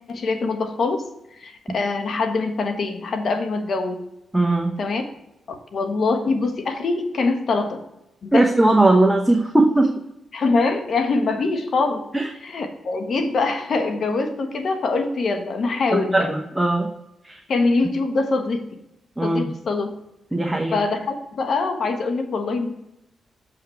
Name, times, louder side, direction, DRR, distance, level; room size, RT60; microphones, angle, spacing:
voice 1, 0.1-1.0 1.4-4.0 4.8-5.0 5.5-7.8 8.2-8.5 10.3-12.0 12.4-16.3 17.5-18.7 19.2-19.9 20.7-22.8, left 3 dB, 60° left, 6 dB, 1.3 m, -23 dB
voice 2, 4.3-4.8 8.3-9.9 12.1-12.3 15.9-16.9 17.2-17.4 19.2-19.5 20.3-20.8, right 2 dB, 10° right, 1 dB, 1.0 m, -19 dB
7.1 x 5.8 x 4.5 m, 0.84 s
cardioid pair, 80°, 0 cm